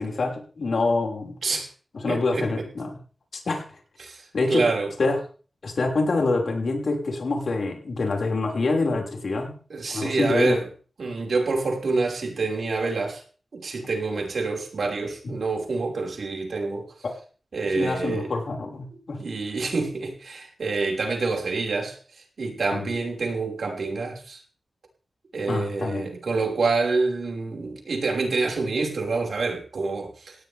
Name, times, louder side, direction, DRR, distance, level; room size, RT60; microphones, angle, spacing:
voice 1, 0.0-1.4 2.0-3.0 3.3-3.6 4.3-4.7 5.0-5.2 5.6-9.5 9.8-10.6 17.7-19.2 22.7-22.9 25.5-26.1, left 3 dB, 70° left, 6.0 m, -26 dB
voice 2, 2.1-2.5 4.0-4.9 9.7-10.6 11.0-13.2 13.5-16.9 17.5-18.3 19.2-22.0 22.4-24.4 25.3-30.4, right 3 dB, 75° right, 5.9 m, -27 dB
19.0 x 17.0 x 3.7 m
wide cardioid pair, 100°, 0 cm